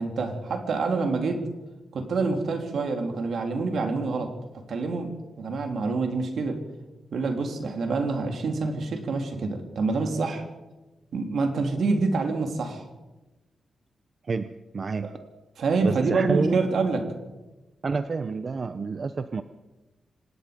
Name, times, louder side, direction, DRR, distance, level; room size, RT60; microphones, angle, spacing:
voice 1, 0.0-1.5 1.9-4.3 4.7-6.6 7.1-10.4 11.1-12.8 15.0-15.3 15.6-17.1, right 3 dB, 70° right, 4 dB, 3.4 m, -27 dB
voice 2, 14.3-15.1 15.8-16.6 17.8-19.4, right 4 dB, 40° right, 10 dB, 0.7 m, -29 dB
26.0 x 19.5 x 5.3 m, 1.1 s
wide cardioid pair, 145°, 0 cm